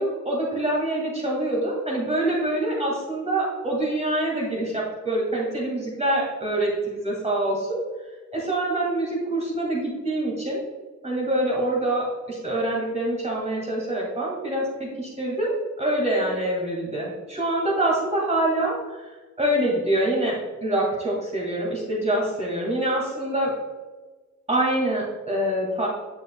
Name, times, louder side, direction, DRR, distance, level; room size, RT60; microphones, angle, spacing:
voice 1, 0.0-7.8 8.3-10.6 11.0-19.1 19.4-23.5 24.5-25.9, right 1 dB, 20° right, -3 dB, 2.1 m, -25 dB
9.7 x 6.4 x 2.3 m, 1.3 s
wide cardioid pair, 150°, 30 cm